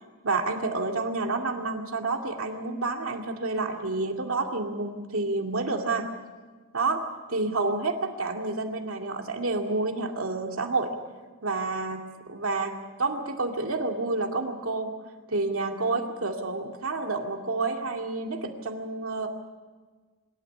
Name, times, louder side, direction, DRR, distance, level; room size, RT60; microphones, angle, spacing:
voice 1, 0.2-6.1 6.7-7.0 7.3-10.9 11.4-12.0 12.3-14.9 15.3-19.3, right 3 dB, 65° right, 3 dB, 2.3 m, -29 dB
25.5 x 13.0 x 9.9 m, 1.4 s
head